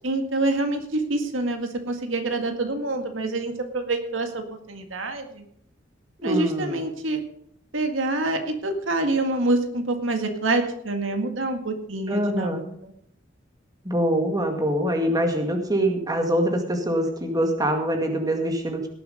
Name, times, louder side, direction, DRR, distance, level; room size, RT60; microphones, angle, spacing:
voice 1, 0.0-5.4 6.2-7.2 7.7-12.6, right 2 dB, 80° right, 5 dB, 1.9 m, -26 dB
voice 2, 6.2-6.8 12.1-12.6 13.8-18.9, right 1 dB, 20° right, 4 dB, 2.0 m, -24 dB
18.0 x 7.9 x 5.1 m, 0.67 s
head